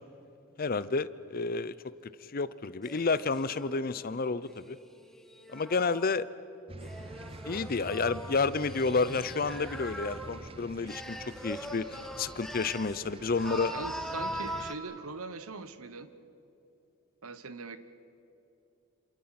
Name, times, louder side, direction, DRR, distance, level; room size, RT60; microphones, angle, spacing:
voice 1, 0.6-1.7 2.3-4.8 5.5-6.3 7.5-11.2 11.4-13.7, left 4 dB, 40° left, 16 dB, 0.6 m, -30 dB
sound 1, 2.8-6.2 6.8-10.5 10.9-13.0 13.3-14.7, equal, ahead, 1.1 m, -42 dB
sound 2, 6.7-14.7, right 2 dB, 25° right, 0.6 m, -46 dB
voice 2, 13.6-16.1 17.2-17.8, right 3 dB, 80° right, 12 dB, 1.1 m, -41 dB
27.5 x 27.0 x 5.9 m, 2.8 s
head